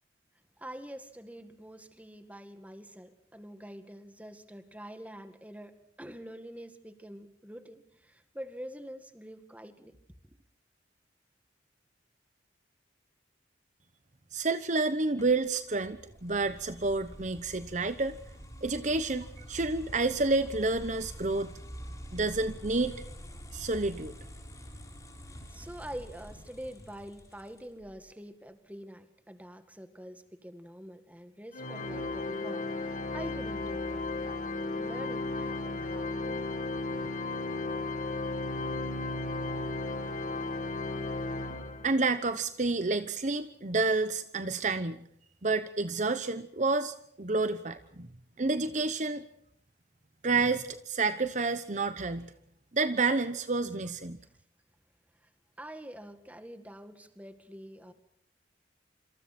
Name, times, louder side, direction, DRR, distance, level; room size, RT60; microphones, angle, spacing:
voice 1, 0.6-9.9 25.5-34.4 34.7-36.4 55.6-57.9, equal, 10° right, 9 dB, 1.9 m, -46 dB
voice 2, 14.3-18.2 18.6-21.5 22.1-22.9 23.5-24.1 41.8-45.0 45.4-48.1 48.4-49.3 50.2-52.3 52.7-54.2, right 3 dB, 40° right, 11 dB, 1.0 m, -29 dB
sound 1, 15.2-27.9, equal, 20° left, 7.4 m, -46 dB
Organ, 31.5-42.2, left 2 dB, 45° left, 2.5 m, -34 dB
27.0 x 26.5 x 4.4 m, 0.72 s
head